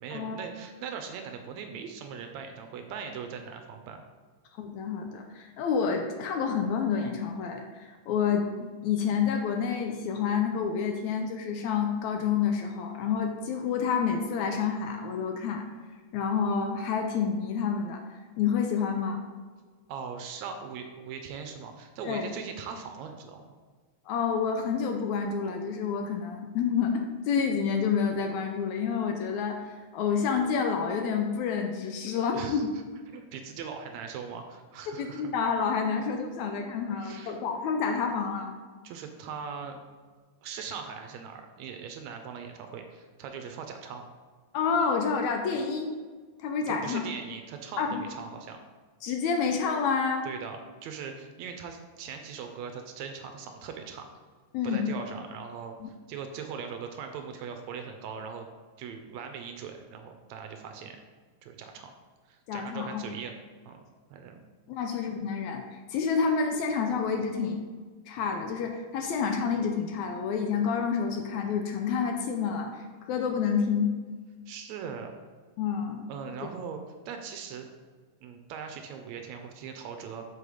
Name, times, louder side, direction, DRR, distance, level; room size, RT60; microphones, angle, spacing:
voice 1, 0.0-4.0 19.9-23.4 32.3-32.6 33.1-35.3 37.0-37.4 38.8-39.8 40.4-44.0 46.7-48.6 50.2-54.1 54.6-58.5 58.8-61.0 61.4-61.9 62.3-63.4 63.7-63.8 64.1-64.4 74.5-75.1 76.1-77.7 78.2-80.3, right 6 dB, 75° right, 5 dB, 1.7 m, -40 dB
voice 2, 4.6-15.6 16.1-18.0 18.4-19.2 22.0-22.3 24.1-29.6 29.9-32.7 35.0-38.5 44.5-46.0 46.4-47.0 47.8-48.0 49.0-50.3 54.5-54.9 55.8-55.9 62.5-63.1 64.7-65.6 65.9-67.6 68.1-73.9 75.6-76.1, left 6 dB, 80° left, 4 dB, 1.7 m, -28 dB
6.4 x 5.4 x 5.0 m, 1.5 s
omnidirectional pair, 3.7 m